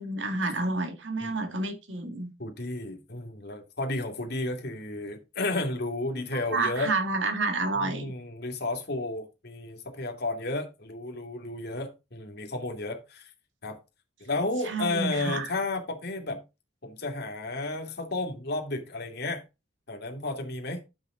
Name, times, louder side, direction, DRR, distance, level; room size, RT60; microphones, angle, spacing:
voice 1, 0.0-2.3 6.3-8.1 14.6-15.5, right 3 dB, 90° right, 1.9 m, -29 dB
voice 2, 2.4-6.9 7.7-13.3 13.6-13.8 14.2-16.4 16.8-19.4 19.9-20.8, left 2 dB, 60° left, 2.4 m, -32 dB
10.0 x 6.5 x 3.8 m
head